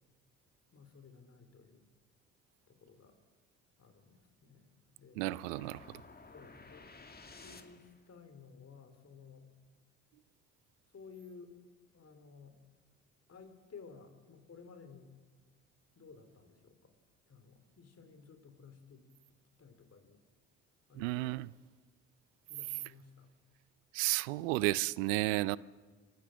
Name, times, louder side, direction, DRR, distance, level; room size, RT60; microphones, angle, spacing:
voice 1, 0.7-1.8 2.7-3.2 3.8-5.2 6.3-6.9 7.4-9.5 10.9-11.6 11.9-12.6 13.3-15.1 16.0-16.9 17.3-20.2 20.9-21.4 22.5-23.3, left 5 dB, 40° left, 3.9 m, -55 dB
voice 2, 5.2-6.0 21.0-21.5 23.9-25.6, right 20 dB, 85° right, 0.6 m, -32 dB
sound 1, 5.4-8.1, left 3 dB, 25° left, 2.1 m, -54 dB
26.5 x 15.5 x 7.5 m
hypercardioid pair, 55°, 37 cm